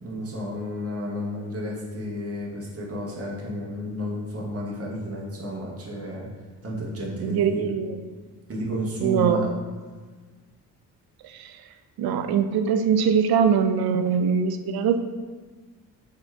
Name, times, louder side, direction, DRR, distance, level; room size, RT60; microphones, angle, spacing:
voice 1, 0.0-6.3 6.6-7.6 8.5-9.5, equal, 30° right, -4 dB, 1.3 m, -31 dB
voice 2, 7.2-8.0 9.0-9.4 11.2-11.6 12.0-15.0, right 7 dB, 55° right, 8 dB, 0.5 m, -22 dB
4.4 x 3.0 x 3.4 m, 1.4 s
hypercardioid pair, 50°, 45 cm